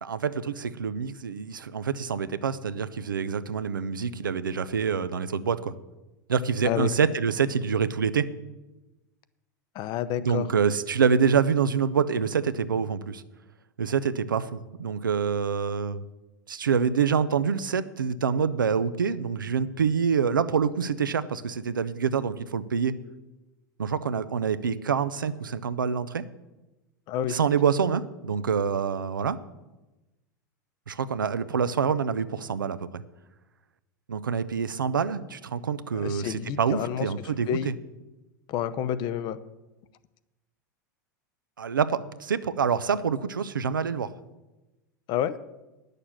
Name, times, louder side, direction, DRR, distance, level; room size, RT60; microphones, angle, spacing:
voice 1, 0.0-5.7 6.3-8.3 10.2-13.2 13.8-16.0 16.5-23.0 23.8-26.2 27.3-29.4 30.9-33.0 34.1-37.7 41.6-44.1, right 6 dB, 90° right, 13 dB, 0.6 m, -26 dB
voice 2, 9.7-10.5 27.1-27.4 35.9-37.1 37.5-37.7 38.5-39.4 45.1-45.3, left 10 dB, 45° left, 14 dB, 0.7 m, -29 dB
10.0 x 6.7 x 7.3 m, 1.1 s
hypercardioid pair, 90°, 11 cm